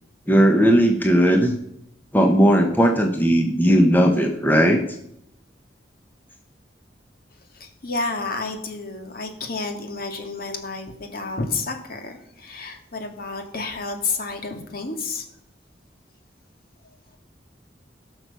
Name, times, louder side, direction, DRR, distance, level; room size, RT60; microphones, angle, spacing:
voice 1, 0.3-1.5 2.1-4.8, equal, 10° left, 4 dB, 1.0 m, -17 dB
voice 2, 7.5-15.3, left 3 dB, 55° left, 4 dB, 2.1 m, -30 dB
17.0 x 6.2 x 6.8 m, 0.75 s
head